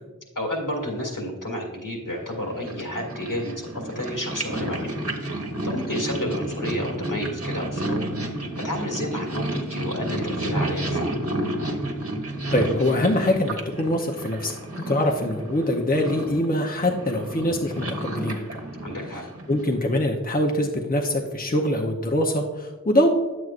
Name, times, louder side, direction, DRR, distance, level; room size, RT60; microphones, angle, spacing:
voice 1, 0.4-4.9 5.6-8.0 8.4-11.1 18.8-19.2, left 1 dB, 70° left, -1 dB, 2.1 m, -31 dB
Purr, 2.2-19.8, right 1 dB, 45° right, 1.2 m, -31 dB
voice 2, 12.5-18.4 19.1-23.1, left 1 dB, 25° left, 1 dB, 0.7 m, -24 dB
9.2 x 7.9 x 2.5 m, 1.3 s
wide cardioid pair, 40°, 33 cm